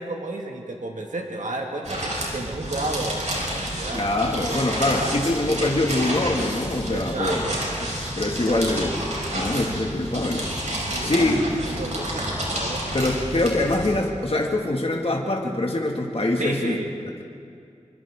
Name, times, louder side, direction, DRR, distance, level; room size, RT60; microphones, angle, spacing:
voice 1, 0.0-4.0 4.9-5.2 6.9-7.7 8.5-8.6 10.9-11.3 11.8-12.8 16.4-17.2, right 2 dB, 85° right, 1 dB, 2.1 m, -32 dB
sound 1, 1.8-14.0, equal, 70° right, 5.7 m, -29 dB
voice 2, 3.9-7.4 8.2-8.9 9.3-10.5 11.0-11.4 12.9-16.8, left 2 dB, 50° left, 0 dB, 2.2 m, -24 dB
27.5 x 25.0 x 3.8 m, 2.4 s
wide cardioid pair, 65°, 13 cm